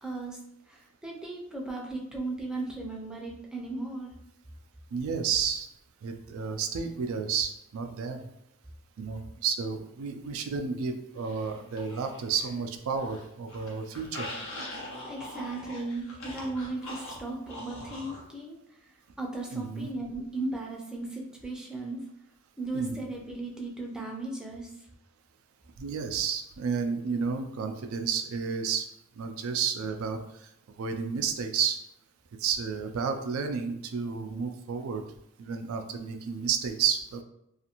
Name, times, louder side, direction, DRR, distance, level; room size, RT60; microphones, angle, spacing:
voice 1, 0.0-0.4 0.7-4.1 14.8-22.0 22.6-24.9, right 2 dB, 5° right, -2 dB, 0.4 m, -36 dB
voice 2, 4.9-5.7 6.0-8.3 9.0-14.3 19.5-19.9 22.7-23.0 25.8-28.9 29.2-30.5 30.8-31.8 32.4-35.0 35.4-37.2, right 6 dB, 90° right, 6 dB, 0.4 m, -31 dB
Zombie Attack, 11.2-12.6 12.9-18.2, left 1 dB, 75° left, 0.8 m, -42 dB
2.5 x 2.4 x 2.8 m, 0.80 s
head